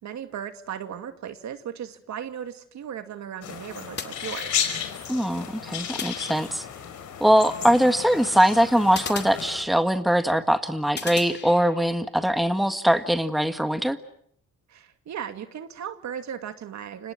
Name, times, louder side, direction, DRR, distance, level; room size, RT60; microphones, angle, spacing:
voice 1, 0.0-4.6 14.7-17.1, right 9 dB, 65° right, 8 dB, 2.3 m, -36 dB
sound 1, 3.4-9.6, left 8 dB, 75° left, 5.2 m, -33 dB
sound 2, 4.0-4.9 6.0-6.9 8.9-10.1 11.0-12.0, left 5 dB, 35° left, 2.4 m, -38 dB
voice 2, 5.1-6.6 7.2-14.0, equal, ahead, 8 dB, 1.7 m, -22 dB
30.0 x 26.5 x 6.2 m, 0.67 s
cardioid pair, 90°, 30 cm